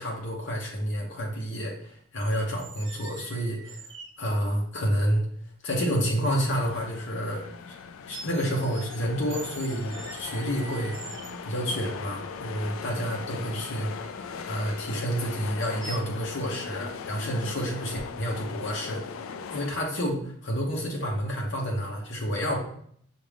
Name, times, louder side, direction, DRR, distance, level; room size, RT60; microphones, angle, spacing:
voice 1, 0.0-3.9 4.2-5.2 5.6-7.7 8.1-11.0 11.4-13.9 14.5-19.0 19.5-22.6, equal, 55° left, -2 dB, 0.8 m, -29 dB
sound 1, 2.2-4.1 5.1-5.2 5.7-7.9 8.1-9.0 9.3-11.6 12.7-15.4 15.8-16.0, right 4 dB, 60° right, 0.7 m, -46 dB
sound 2, 6.5-19.7, left 5 dB, 75° left, 0.3 m, -39 dB
6.1 x 2.5 x 3.4 m, 0.65 s
head